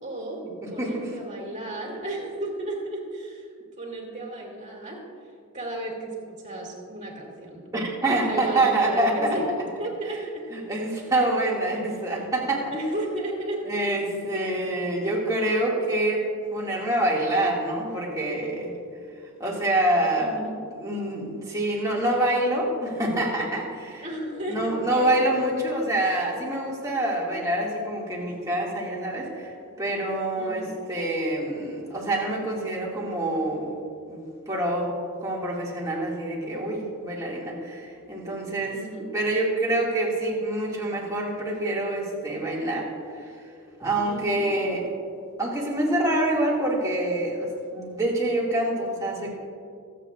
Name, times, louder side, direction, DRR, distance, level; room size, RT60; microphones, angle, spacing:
voice 1, 0.0-0.4 0.7-3.5 3.8-5.0 5.5-7.6 8.2-9.5 9.8-10.4 12.7-13.6 20.2-20.5 24.0-25.1 30.4-30.7 38.7-39.1 44.0-44.4, right 1 dB, 35° right, -2 dB, 2.4 m, -33 dB
voice 2, 0.6-1.1 7.7-9.4 10.5-12.7 13.6-18.7 19.4-20.4 20.8-24.1 24.5-33.8 34.1-34.9 35.2-38.8 39.1-43.3 43.8-44.8 45.4-49.3, right 1 dB, 15° right, -4 dB, 2.0 m, -26 dB
24.0 x 8.1 x 2.4 m, 2.3 s
head